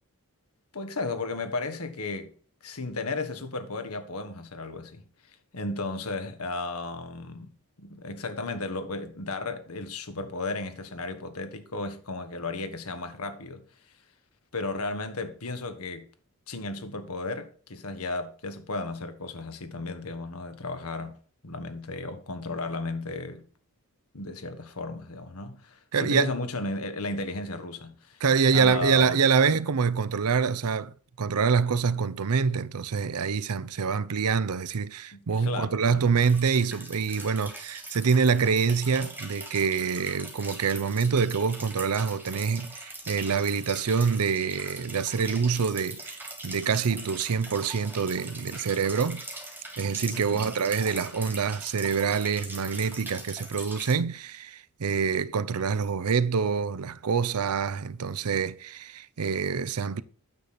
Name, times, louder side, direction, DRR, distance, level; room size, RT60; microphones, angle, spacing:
voice 1, 0.7-2.3 2.6-5.0 5.5-7.5 7.8-13.6 14.5-16.1 16.5-21.2 21.4-23.4 24.1-28.2 28.5-29.2 35.1-36.0 50.1-50.5, left 3 dB, 70° left, 1.3 m, -34 dB
voice 2, 25.9-26.3 28.2-49.2 49.8-60.0, right 5 dB, 80° right, 0.6 m, -26 dB
sound 1, 36.2-54.0, right 2 dB, 10° right, 2.3 m, -41 dB
9.2 x 6.7 x 4.3 m
head